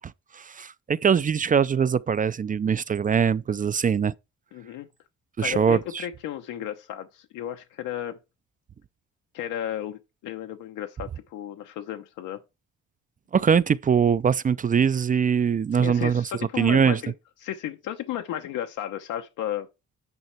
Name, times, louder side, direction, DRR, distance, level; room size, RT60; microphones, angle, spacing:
voice 1, 0.3-4.1 5.4-6.0 13.3-16.2 16.6-17.0, right 7 dB, 30° right, 0.4 m, -22 dB
voice 2, 4.5-4.9 5.4-8.2 9.3-12.4 15.7-17.1 17.4-19.7, left 11 dB, 90° left, 0.9 m, -33 dB
9.4 x 5.4 x 4.4 m
cardioid pair, 90°, 30 cm